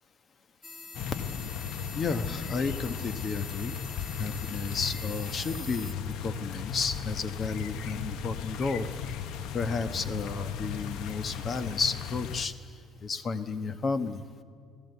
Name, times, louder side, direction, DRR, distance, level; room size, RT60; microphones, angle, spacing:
sound 1, 0.6-5.9, left 3 dB, 20° left, 1.4 m, -44 dB
sound 2, 0.9-12.5, left 8 dB, 75° left, 1.0 m, -36 dB
sound 3, 1.8-12.1, right 5 dB, 35° right, 3.7 m, -57 dB
voice 1, 1.9-8.9 9.5-12.5 13.0-14.2, left 4 dB, 35° left, 10 dB, 1.2 m, -32 dB
29.0 x 17.5 x 8.1 m, 2.2 s
cardioid pair, 135°, 0 cm